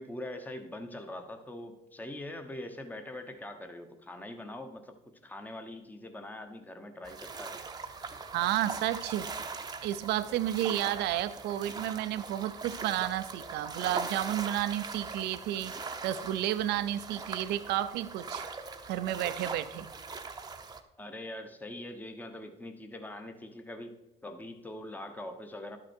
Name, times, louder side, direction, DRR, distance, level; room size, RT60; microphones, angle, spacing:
voice 1, 0.0-7.6 21.0-23.9 24.2-25.8, left 1 dB, 10° left, 6 dB, 1.0 m, -43 dB
sound 1, 7.0-20.8, right 4 dB, 25° right, 0.8 m, -41 dB
voice 2, 8.3-9.3 9.8-18.5 18.9-19.9, right 12 dB, 80° right, 12 dB, 0.6 m, -31 dB
11.5 x 6.2 x 4.4 m, 0.99 s
cardioid pair, 110°, 17 cm